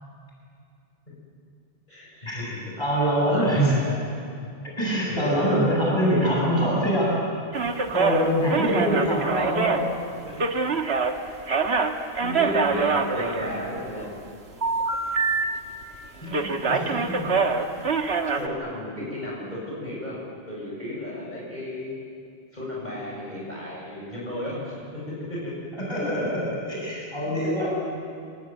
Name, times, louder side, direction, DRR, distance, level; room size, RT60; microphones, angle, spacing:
voice 1, 1.9-2.6 3.2-4.0 5.2-5.5 9.0-9.1 10.2-10.7 12.2-14.1 16.6-17.3 18.3-20.2 20.5-21.9 22.5-25.6 26.0-26.3 27.4-27.7, left 1 dB, 40° left, -5 dB, 7.8 m, -34 dB
voice 2, 2.8-3.8 4.8-7.1 7.9-9.8 16.2-17.3 25.7-26.2 26.7-27.7, equal, 25° left, -5 dB, 7.6 m, -24 dB
sound 1, 7.5-11.1 11.4-13.9 14.6-15.9 16.3-18.5, right 4 dB, 70° right, 1.7 m, -24 dB
28.0 x 20.5 x 9.4 m, 2.4 s
omnidirectional pair, 1.2 m